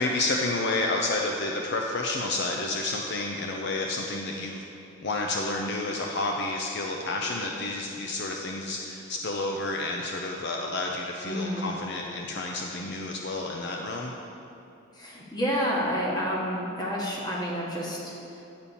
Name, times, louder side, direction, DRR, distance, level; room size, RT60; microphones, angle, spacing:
voice 1, 0.0-4.6 5.0-14.1, left 2 dB, 55° left, 1 dB, 0.5 m, -30 dB
voice 2, 11.2-11.7 14.9-18.1, equal, 20° left, -4 dB, 1.5 m, -29 dB
10.5 x 4.2 x 7.0 m, 2.8 s
head